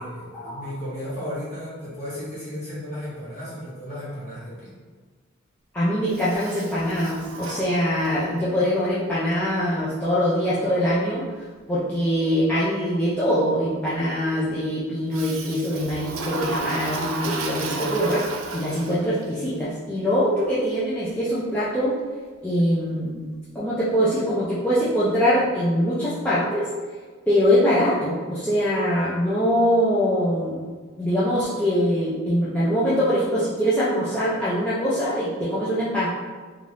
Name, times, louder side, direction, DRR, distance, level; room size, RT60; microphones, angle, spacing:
voice 1, 0.0-4.8, equal, 35° left, -9 dB, 1.3 m, -34 dB
voice 2, 5.7-11.2 11.7-18.2 18.5-22.0 22.4-23.2 23.5-26.7 27.3-30.6 31.0-36.1, equal, 5° left, -11 dB, 0.4 m, -23 dB
Toilet flush, 6.1-8.4 15.1-19.3, right 3 dB, 90° right, 0.4 m, -33 dB
2.6 x 2.3 x 3.3 m, 1.5 s
head